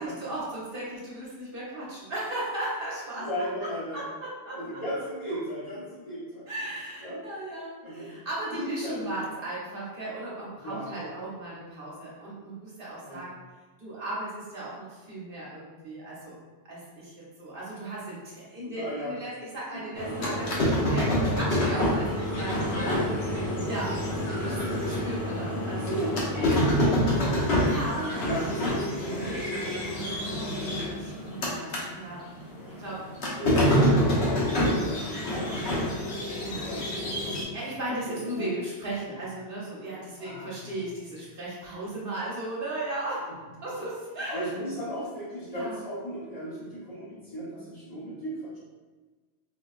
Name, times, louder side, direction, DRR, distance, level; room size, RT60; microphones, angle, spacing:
voice 1, 0.0-3.3 3.9-4.8 6.5-13.4 13.8-16.3 16.6-24.0 24.4-24.6 24.8-25.9 27.6-32.3 32.7-33.1 33.6-33.7 36.4-36.8 37.5-43.3 43.6-44.5 45.5-45.8, right 1 dB, 60° right, -7 dB, 1.0 m, -36 dB
voice 2, 3.2-4.1 4.5-6.5 7.0-7.3 7.8-8.2 8.5-9.2 10.6-11.1 13.0-13.3 18.6-19.2 19.7-19.8 24.4-25.0 25.7-27.9 28.2-29.3 33.3-36.2 36.4-37.6 38.1-38.6 39.0-39.2 40.2-40.8 44.3-48.6, equal, 35° left, -10 dB, 1.0 m, -36 dB
sound 1, 20.0-31.9 32.2-37.4, equal, 80° left, 1.0 m, -27 dB
4.1 x 2.2 x 2.3 m, 1.3 s
omnidirectional pair, 1.1 m